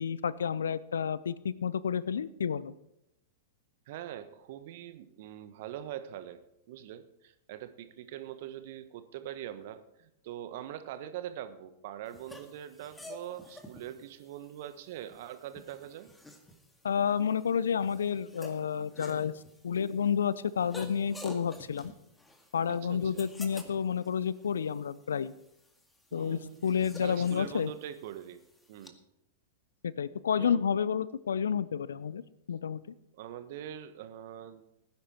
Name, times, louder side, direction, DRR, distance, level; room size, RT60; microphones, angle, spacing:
voice 1, 0.0-2.7 16.8-19.3 19.6-21.9 22.5-25.3 26.1-27.7 29.8-32.2 32.5-32.8, left 7 dB, 70° left, 19 dB, 0.6 m, -30 dB
voice 2, 3.9-6.4 6.7-16.1 22.7-23.3 26.1-28.4 28.7-29.0 30.4-30.6 33.1-34.6, right 11 dB, 55° right, 11 dB, 1.2 m, -43 dB
sound 1, 12.1-28.9, left 1 dB, 10° left, 2.0 m, -51 dB
18.0 x 10.5 x 4.5 m, 0.86 s
figure-of-eight pair, 100°, 0 cm